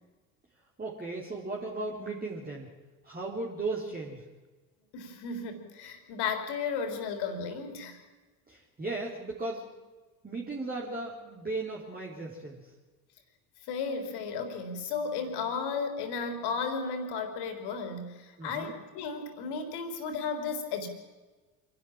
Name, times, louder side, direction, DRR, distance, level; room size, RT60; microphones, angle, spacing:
voice 1, 0.8-2.7 3.0-4.3 8.5-9.7 10.2-12.7 18.4-18.7, right 2 dB, 20° right, -4 dB, 3.9 m, -36 dB
voice 2, 4.9-8.0 13.6-20.9, left 5 dB, 55° left, 7 dB, 3.7 m, -34 dB
27.0 x 11.5 x 8.9 m, 1.3 s
figure-of-eight pair, 55°, 46 cm